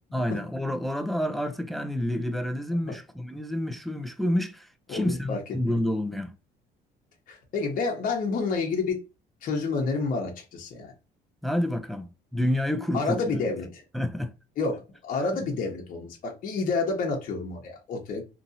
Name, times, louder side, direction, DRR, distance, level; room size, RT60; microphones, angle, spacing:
voice 1, 0.1-6.3 11.4-13.2 13.9-14.3, left 1 dB, ahead, 0.4 m, -29 dB
voice 2, 4.9-5.4 7.3-9.0 9.4-10.9 12.9-13.8 14.6-18.2, left 4 dB, 55° left, 0.9 m, -29 dB
3.0 x 2.6 x 2.6 m
cardioid pair, 110°, 17 cm